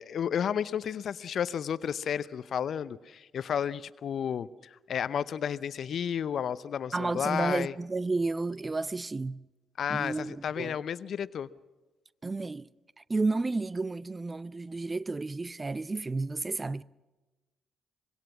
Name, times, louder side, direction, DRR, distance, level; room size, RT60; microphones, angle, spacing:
voice 1, 0.0-7.7 9.8-11.5, left 8 dB, 55° left, 0.7 m, -32 dB
voice 2, 6.9-9.4 9.9-10.8 12.2-12.7 13.1-16.8, right 3 dB, 25° right, 0.6 m, -31 dB
25.0 x 21.5 x 6.1 m
hypercardioid pair, 45°, 0 cm